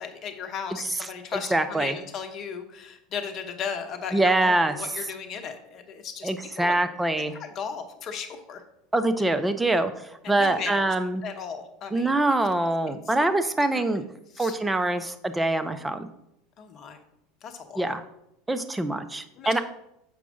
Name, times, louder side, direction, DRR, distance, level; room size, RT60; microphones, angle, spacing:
voice 1, 0.0-6.3 6.6-6.8 7.4-8.6 10.2-10.9 11.2-12.2 12.9-13.1 13.7-13.9 14.3-14.6 16.6-17.0 17.4-17.9 19.3-19.6, left 6 dB, 40° left, 6 dB, 0.9 m, -36 dB
voice 2, 1.3-2.0 4.1-4.8 6.2-7.3 8.9-11.2 11.9-14.0 14.4-16.1 17.8-18.0 18.5-19.6, right 2 dB, 10° right, 9 dB, 0.6 m, -24 dB
7.0 x 4.7 x 3.9 m, 0.83 s
figure-of-eight pair, 75°, 0 cm